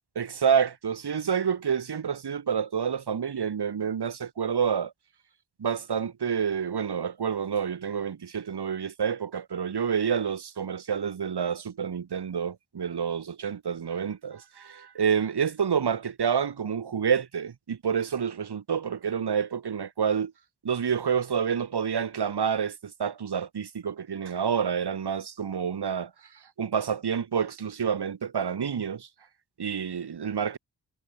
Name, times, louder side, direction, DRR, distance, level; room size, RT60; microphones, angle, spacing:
voice 1, 0.1-4.9 5.6-20.3 20.6-26.1 26.6-29.1 29.6-30.6, right 7 dB, 75° right, 2.7 m, -28 dB
wide cardioid pair, 90°, 40 cm